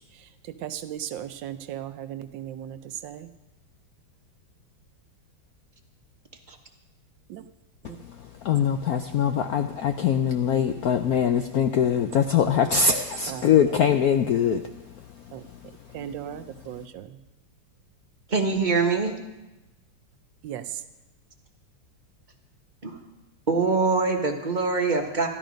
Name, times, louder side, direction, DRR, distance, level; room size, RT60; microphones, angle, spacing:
voice 1, 0.6-3.3 7.3-7.4 7.8-8.0 13.3-13.5 15.3-15.4 15.9-17.1 20.4-20.6, right 10 dB, 75° right, 11 dB, 1.3 m, -36 dB
voice 2, 7.8-14.9 15.4-15.6 15.9-16.1 16.4-16.5, left 7 dB, 75° left, 7 dB, 0.8 m, -23 dB
voice 3, 18.3-19.1 22.8-23.0 23.5-25.3, right 4 dB, 30° right, 3 dB, 1.1 m, -23 dB
13.0 x 12.5 x 5.1 m, 1.0 s
omnidirectional pair, 2.1 m